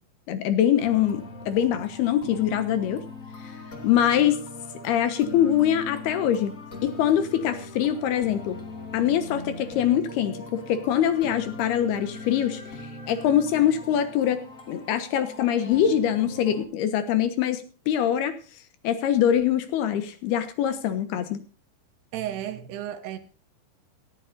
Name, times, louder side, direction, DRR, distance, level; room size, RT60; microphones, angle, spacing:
voice 1, 0.3-3.0 3.8-4.4 4.8-6.5 6.8-8.6 8.9-12.6 13.1-14.4 14.7-18.3 18.8-21.4, left 10 dB, 70° left, 3.0 m, -23 dB
sound 1, 0.8-16.6, left 2 dB, 30° left, 1.6 m, -40 dB
voice 2, 22.1-23.2, right 11 dB, 70° right, 3.1 m, -33 dB
18.5 x 13.5 x 2.6 m
omnidirectional pair, 5.1 m